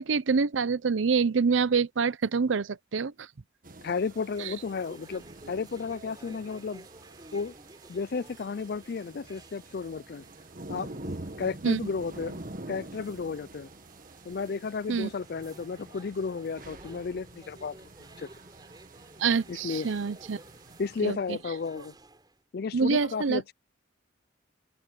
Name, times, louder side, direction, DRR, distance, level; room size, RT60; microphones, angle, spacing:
voice 1, 0.0-3.3 11.6-11.8 14.9-15.1 19.2-20.4 21.0-21.2 22.7-23.4, right 5 dB, 90° right, 0.6 m, -26 dB
sound 1, 3.6-21.0, right 2 dB, 45° right, 1.6 m, -46 dB
voice 2, 3.8-6.9 7.3-7.5 7.9-10.2 10.7-11.1 11.4-12.4 12.7-13.7 14.2-17.8 18.2-18.3 19.5-19.9 20.8-21.9 22.5-23.5, left 5 dB, 55° left, 0.4 m, -33 dB
sound 2, 4.0-22.4, right 2 dB, 20° right, 5.9 m, -54 dB
open air
head